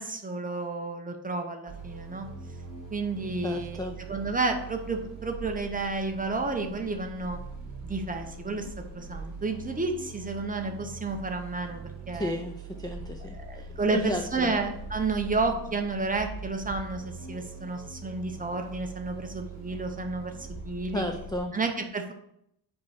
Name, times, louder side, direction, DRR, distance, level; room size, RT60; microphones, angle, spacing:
voice 1, 0.0-2.3 2.9-7.4 7.8-8.7 8.9-12.3 13.3-20.3 20.6-21.0 21.5-22.1, right 3 dB, 20° right, 4 dB, 0.7 m, -31 dB
sound 1, 1.7-21.4, right 3 dB, 45° right, 2.0 m, -42 dB
voice 2, 3.4-4.0 12.1-13.7 13.9-14.5 20.9-21.5, left 1 dB, 10° left, 3 dB, 0.4 m, -33 dB
5.3 x 4.6 x 5.6 m, 0.77 s
wide cardioid pair, 155°, 43 cm